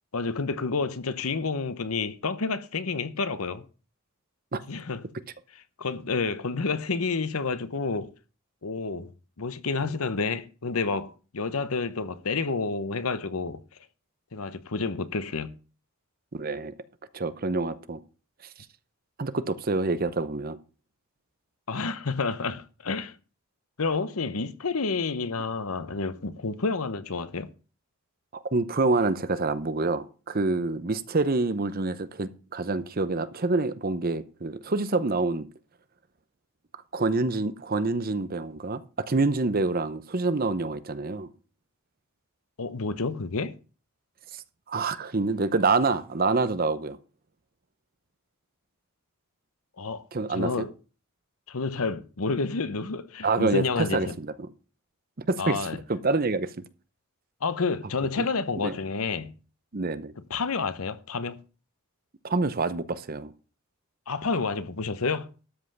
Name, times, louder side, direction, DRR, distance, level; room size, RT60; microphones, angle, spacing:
voice 1, 0.1-3.7 4.7-5.1 5.8-8.1 8.6-9.1 9.4-13.6 14.3-15.5 21.7-23.2 23.8-27.5 42.6-43.5 49.8-50.0 50.3-50.7 51.5-54.1 55.4-55.8 57.4-59.3 60.3-61.4 64.1-65.3, left 4 dB, 75° left, 0.9 m, -29 dB
voice 2, 16.3-16.7 17.1-18.0 19.2-20.6 28.3-35.5 36.9-41.3 44.7-47.0 50.1-50.7 53.2-54.5 55.3-56.5 58.2-58.3 58.6-58.7 59.7-60.1 62.2-63.3, right 3 dB, 40° right, 0.8 m, -27 dB
13.0 x 5.5 x 6.6 m
head